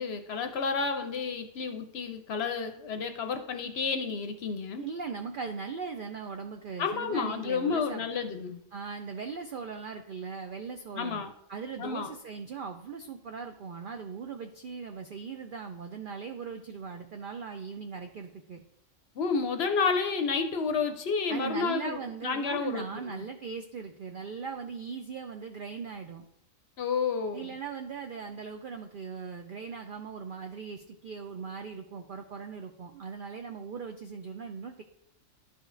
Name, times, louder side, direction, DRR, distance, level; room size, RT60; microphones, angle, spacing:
voice 1, 0.0-4.9 6.8-8.6 10.9-11.3 11.8-12.1 19.2-23.2 26.8-27.6, left 5 dB, 60° left, 7 dB, 0.7 m, -31 dB
voice 2, 4.8-8.1 8.7-11.2 11.5-18.6 21.3-26.3 27.3-34.8, right 5 dB, 70° right, 5 dB, 0.4 m, -39 dB
11.5 x 5.1 x 2.5 m, 0.75 s
omnidirectional pair, 1.4 m